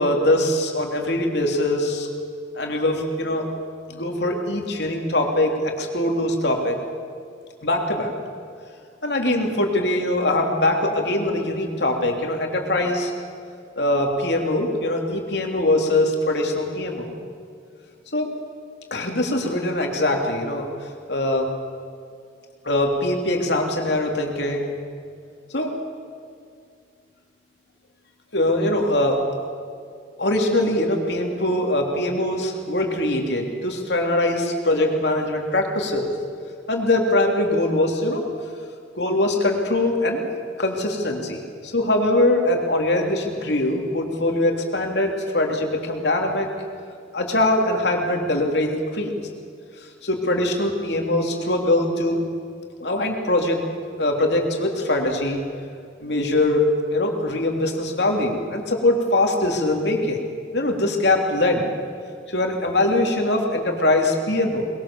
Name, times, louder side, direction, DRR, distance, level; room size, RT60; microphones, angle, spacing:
voice 1, 0.0-2.1 2.5-3.5 3.9-6.8 7.6-8.1 9.0-13.1 13.8-17.1 18.1-18.3 18.9-20.6 21.1-21.5 22.6-24.8 25.5-25.7 28.3-29.2 30.2-36.1 36.7-38.2 39.0-40.2 40.6-46.5 47.1-49.1 50.0-52.2 52.8-53.6 54.0-55.4 56.0-60.2 60.5-61.7 62.3-64.6, left 1 dB, 70° left, 2 dB, 3.2 m, -22 dB
23.0 x 21.5 x 7.2 m, 2.3 s
head